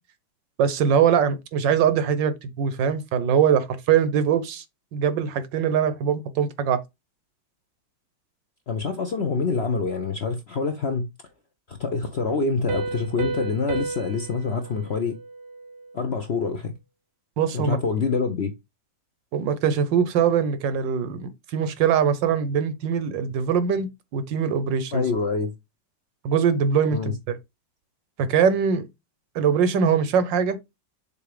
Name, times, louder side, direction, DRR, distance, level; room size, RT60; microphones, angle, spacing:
voice 1, 0.6-4.6 4.9-6.8 17.4-17.8 19.3-25.0 26.2-27.4 28.2-28.8 29.3-30.6, right 7 dB, 80° right, 1.6 m, -22 dB
voice 2, 8.7-11.1 11.7-15.2 15.9-16.7 17.5-18.5 24.9-25.5 26.9-27.1, left 4 dB, 55° left, 0.7 m, -26 dB
Piano, 12.7-16.1, right 3 dB, 45° right, 0.9 m, -33 dB
6.8 x 2.8 x 4.9 m
omnidirectional pair, 2.0 m